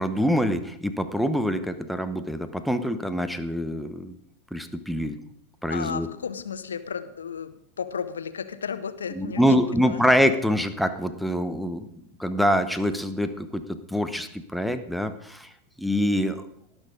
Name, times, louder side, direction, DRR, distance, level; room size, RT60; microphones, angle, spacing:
voice 1, 0.0-4.2 4.5-5.2 5.6-6.1 9.2-11.9 12.2-15.5 15.8-16.4, equal, ahead, 8 dB, 1.0 m, -25 dB
voice 2, 5.7-9.4 9.7-10.0, left 6 dB, 70° left, 11 dB, 0.8 m, -33 dB
18.5 x 6.3 x 5.1 m, 0.72 s
figure-of-eight pair, 90°, 0 cm